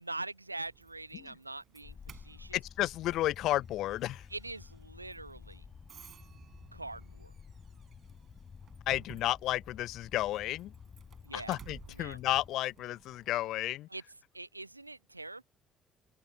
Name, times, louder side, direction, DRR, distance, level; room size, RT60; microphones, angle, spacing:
voice 1, 0.0-2.6 4.3-5.7 6.7-7.3 11.2-11.6 11.9-12.2 13.9-14.0 14.3-15.4, right 2 dB, 90° right, 0.8 m, -43 dB
Doorbell, 0.6-13.8, right 9 dB, 50° right, 7.0 m, -57 dB
sound 1, 1.8-12.5, left 6 dB, 40° left, 5.7 m, -52 dB
voice 2, 2.5-4.3 8.9-10.7 11.3-13.9, left 15 dB, 60° left, 0.4 m, -32 dB
open air
figure-of-eight pair, 45°, 0 cm